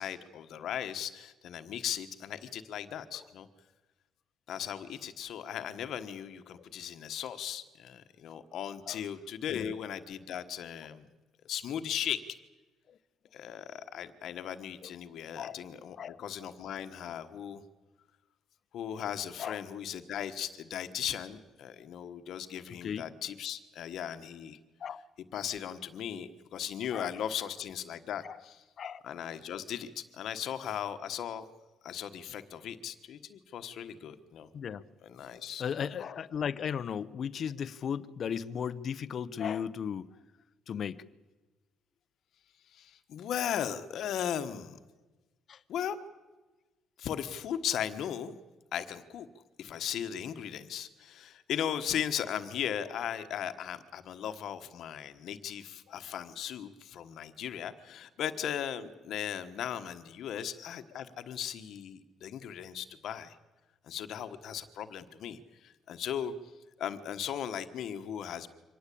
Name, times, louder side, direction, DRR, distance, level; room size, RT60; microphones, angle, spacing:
voice 1, 0.0-3.5 4.5-11.0 11.4-12.2 13.3-17.6 18.7-24.6 25.3-28.6 29.0-31.5 31.8-34.5 35.0-35.9 42.7-44.8 45.7-46.0 47.0-48.4 48.7-49.3 49.6-63.4 63.9-66.3 66.8-68.5, left 9 dB, 60° left, 10 dB, 1.3 m, -37 dB
voice 2, 22.8-23.1 24.8-25.0 26.9-27.1 28.2-28.4 28.8-29.0 34.5-34.8 35.6-40.1 40.7-41.0 45.5-45.6, left 7 dB, 40° left, 17 dB, 0.8 m, -36 dB
24.5 x 18.5 x 8.5 m, 1.2 s
cardioid pair, 160°, 0 cm